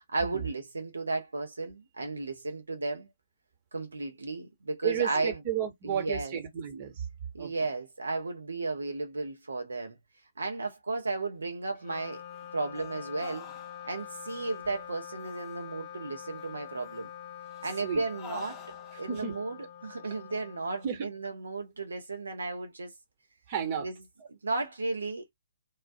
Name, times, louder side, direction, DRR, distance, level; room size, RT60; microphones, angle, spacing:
voice 1, 0.0-3.1 3.7-5.4 5.8-6.3 7.3-10.0 10.4-12.2 12.5-13.5 13.8-17.1 17.6-18.6 19.0-22.9 23.8-24.0 24.3-25.3, right 3 dB, 75° right, 0.8 m, -34 dB
voice 2, 4.8-7.1 7.4-7.5 17.8-18.0 18.9-19.3 20.8-21.1 23.5-23.9, right 8 dB, 35° right, 1.0 m, -32 dB
Wind instrument woodwind instrument, 11.7-21.4, left 9 dB, 35° left, 0.5 m, -45 dB
sound 1, 12.3-14.0 14.3-14.8 15.2-15.7 16.4-17.1 17.4-19.2, left 3 dB, 10° left, 0.8 m, -51 dB
2.3 x 2.0 x 2.6 m
figure-of-eight pair, 135°, 0 cm